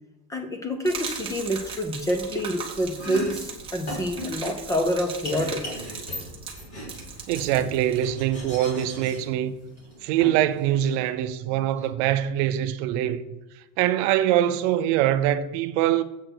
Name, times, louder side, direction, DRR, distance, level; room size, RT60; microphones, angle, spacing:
voice 1, 0.3-5.6, equal, 10° left, 0.4 m, -27 dB
Gurgling / Liquid, 0.8-8.5, right 5 dB, 10° right, 0.9 m, -39 dB
Domestic sounds home sounds, 2.9-11.1, left 1 dB, 35° left, 3.3 m, -39 dB
voice 2, 7.3-9.5 10.0-13.2 13.8-16.0, right 12 dB, 55° right, 0.7 m, -23 dB
7.9 x 6.5 x 6.1 m
cardioid pair, 180°, 43 cm